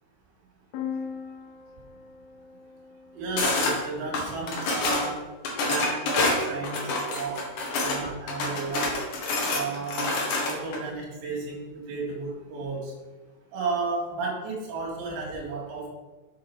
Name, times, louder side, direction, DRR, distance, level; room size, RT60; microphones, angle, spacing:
sound 1, 0.7-4.5, left 7 dB, 85° left, 3.7 m, -40 dB
voice 1, 3.1-5.2 5.6-6.8 7.1-7.4 7.8-9.0 9.5-10.1 10.5-12.9 13.5-15.9, right 3 dB, 70° right, -1 dB, 4.0 m, -33 dB
sound 2, 3.4-3.8 4.1-5.1 5.4-8.0 8.3-10.8, left 2 dB, 60° left, 2.2 m, -27 dB
8.4 x 7.4 x 4.8 m, 1.2 s
omnidirectional pair, 5.7 m